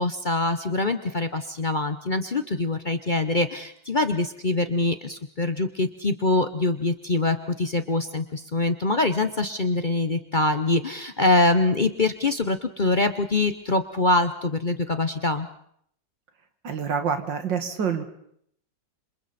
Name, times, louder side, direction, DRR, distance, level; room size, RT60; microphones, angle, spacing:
voice 1, 0.0-15.5, left 2 dB, 40° left, 9 dB, 0.8 m, -24 dB
voice 2, 16.6-18.0, right 6 dB, 85° right, 7 dB, 2.6 m, -27 dB
27.5 x 26.5 x 4.2 m, 0.68 s
omnidirectional pair, 1.9 m